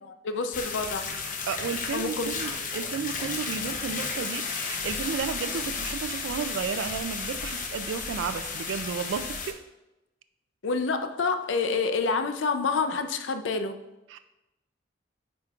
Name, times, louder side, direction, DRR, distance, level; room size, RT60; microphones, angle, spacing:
voice 1, 0.0-1.1 1.9-2.4 10.6-13.8, left 4 dB, 85° left, 9 dB, 0.5 m, -28 dB
sound 1, 0.5-9.5, left 5 dB, 45° left, 0.7 m, -33 dB
voice 2, 1.5-9.6 14.1-14.2, right 6 dB, 85° right, 11 dB, 0.3 m, -33 dB
8.8 x 5.1 x 2.4 m, 0.98 s
head